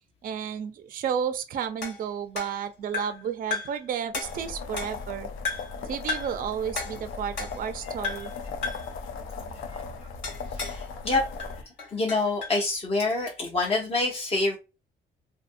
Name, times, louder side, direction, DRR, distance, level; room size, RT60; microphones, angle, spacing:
voice 1, 0.2-5.3 5.8-8.3, right 8 dB, 45° right, 0.4 m, -32 dB
sound 1, 1.8-3.3 3.5-3.8 4.1-5.1 5.4-5.8 6.1-6.4 6.8-7.8 8.0-8.4 8.6-8.9 10.2-10.8 11.1-12.6, left 4 dB, 65° left, 1.5 m, -35 dB
sound 2, 4.2-11.6, left 4 dB, 90° left, 0.6 m, -38 dB
voice 2, 10.5-11.2 11.9-14.6, left 3 dB, 30° left, 0.7 m, -26 dB
2.7 x 2.5 x 2.5 m
cardioid pair, 90°, 20 cm